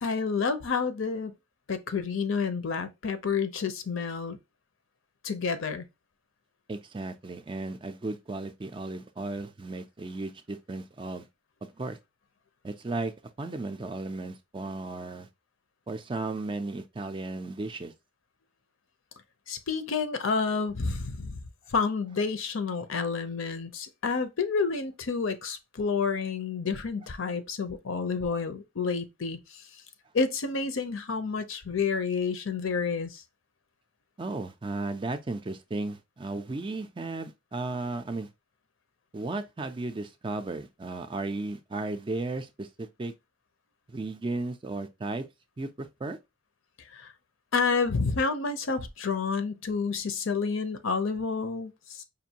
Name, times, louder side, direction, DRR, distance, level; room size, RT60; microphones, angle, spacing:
voice 1, 0.0-1.4 1.7-4.4 5.2-5.9 19.5-21.4 21.7-29.4 30.1-33.2 46.9-47.1 47.5-52.0, left 5 dB, 70° left, 0.6 m, -29 dB
voice 2, 6.7-11.3 11.6-12.0 12.6-13.1 13.4-15.3 15.9-17.9 34.2-38.3 39.1-43.1 43.9-45.3 45.6-46.2, right 2 dB, 25° right, 0.4 m, -35 dB
5.2 x 2.5 x 2.8 m
head